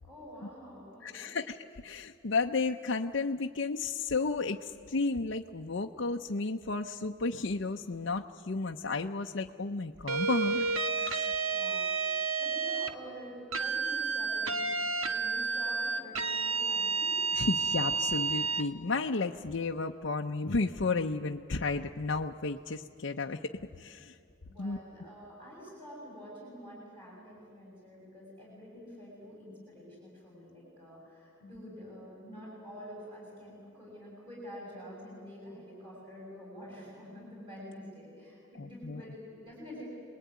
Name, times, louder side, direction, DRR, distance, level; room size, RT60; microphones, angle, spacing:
voice 1, 0.0-1.4 11.5-17.2 24.4-39.9, equal, 25° right, -5 dB, 6.9 m, -48 dB
voice 2, 1.0-10.7 10.9-11.3 17.3-23.5 23.8-24.2 24.6-24.8 38.6-39.0, left 3 dB, 60° left, 2 dB, 0.7 m, -33 dB
sound 1, 10.1-12.9 13.5-18.7, right 4 dB, 85° right, 1.4 m, -31 dB
27.5 x 20.5 x 9.4 m, 2.4 s
head